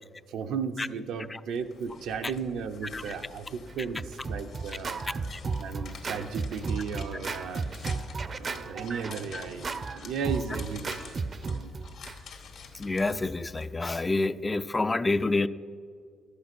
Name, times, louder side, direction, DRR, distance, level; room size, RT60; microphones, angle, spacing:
voice 1, 0.3-5.0 5.6-7.7 8.4-11.2 11.4-11.7, right 6 dB, 85° right, 6 dB, 0.7 m, -35 dB
sound 1, 1.5-13.7, left 5 dB, 70° left, 1.9 m, -48 dB
Scratching (performance technique), 3.7-12.2, right 4 dB, 40° right, 0.5 m, -34 dB
voice 2, 12.7-15.5, left 2 dB, 20° left, 13 dB, 0.4 m, -28 dB
12.0 x 8.5 x 6.1 m, 2.2 s
cardioid pair, 90°, 0 cm